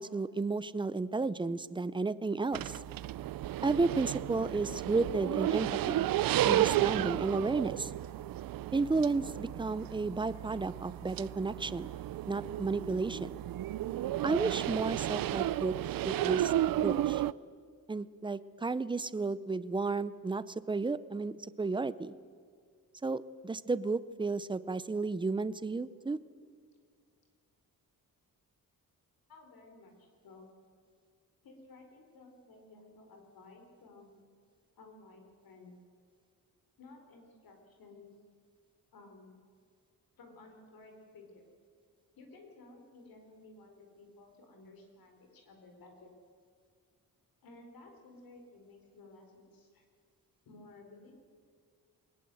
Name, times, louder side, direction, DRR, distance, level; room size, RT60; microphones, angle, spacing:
voice 1, 0.0-2.8 3.6-6.0 6.5-7.9 8.7-11.9 12.3-13.4 14.2-15.7 16.0-16.5 16.8-17.2 17.9-22.1 23.0-26.2, right 3 dB, 15° right, 16 dB, 0.6 m, -32 dB
sound 1, 2.5-17.3, right 13 dB, 70° right, 0.5 m, -33 dB
voice 2, 29.3-30.5 31.4-34.1 34.8-35.7 36.8-38.1 38.9-39.3 40.2-41.5 42.1-46.1 47.4-49.8 50.4-51.1, left 2 dB, 75° left, 3 dB, 4.5 m, -55 dB
22.5 x 20.0 x 7.8 m, 2.1 s
wide cardioid pair, 155°, 36 cm